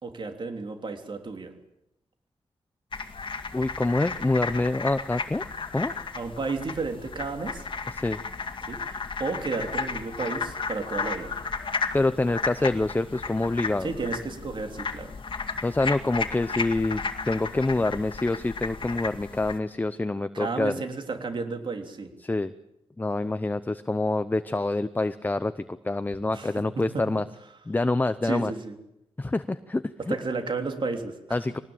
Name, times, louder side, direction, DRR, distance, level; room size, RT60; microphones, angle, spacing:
voice 1, 0.0-1.5 6.1-7.7 8.7-11.3 13.8-15.1 20.3-22.1 26.3-27.1 28.2-28.8 30.0-31.4, right 4 dB, 50° right, 5 dB, 3.4 m, -32 dB
sound 1, 2.9-19.6, left 4 dB, 50° left, 2.1 m, -34 dB
voice 2, 3.5-5.4 5.7-5.9 7.9-8.2 11.9-13.9 15.6-20.7 22.2-22.5 23.0-27.2 27.7-28.5 29.2-30.2 31.3-31.6, left 2 dB, 15° left, 11 dB, 0.8 m, -26 dB
23.0 x 19.0 x 8.9 m, 0.88 s
wide cardioid pair, 120°, 11 cm